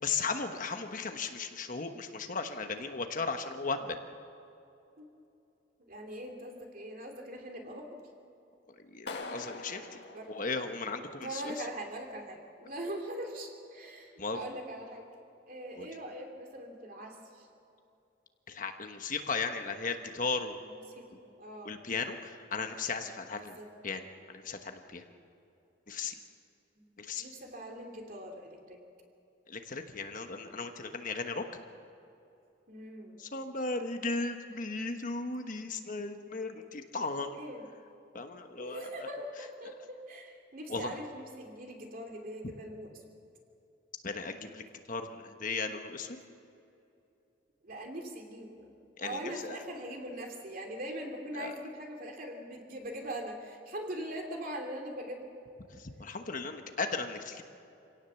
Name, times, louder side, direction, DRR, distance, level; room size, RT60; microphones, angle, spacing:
voice 1, 0.0-4.0 8.9-10.0 10.3-11.5 14.2-14.4 15.8-15.9 18.5-20.6 21.6-23.6 23.8-24.0 24.3-25.0 25.9-26.1 27.0-27.3 29.5-31.4 33.2-37.4 38.1-38.9 40.7-40.9 44.0-46.2 49.0-49.6 51.3-51.5 55.7-57.4, left 4 dB, 45° left, 6 dB, 1.2 m, -36 dB
voice 2, 5.9-8.1 10.1-10.4 11.2-17.5 20.7-21.7 23.4-23.7 26.8-26.9 27.2-28.8 32.7-33.2 37.3-37.6 38.6-43.0 47.6-48.7 49.0-55.3, right 1 dB, 45° right, 2 dB, 2.9 m, -42 dB
Clapping, 9.1-11.1, left 3 dB, 60° left, 1.8 m, -43 dB
27.0 x 17.5 x 7.0 m, 2.7 s
head